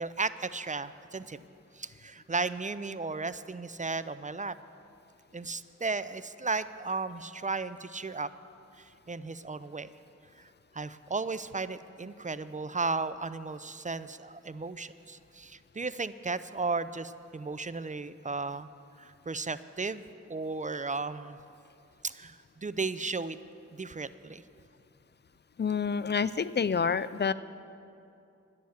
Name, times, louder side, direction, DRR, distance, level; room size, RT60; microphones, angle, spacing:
voice 1, 0.0-1.4 1.7-4.5 5.3-8.3 8.8-9.9 10.7-18.7 19.0-20.0 20.3-21.4 22.0-23.4 23.7-24.4, right 3 dB, 25° right, 14 dB, 0.4 m, -35 dB
voice 2, 25.6-27.3, left 6 dB, 35° left, 15 dB, 0.4 m, -28 dB
10.5 x 10.5 x 7.2 m, 2.6 s
wide cardioid pair, 60°, 29 cm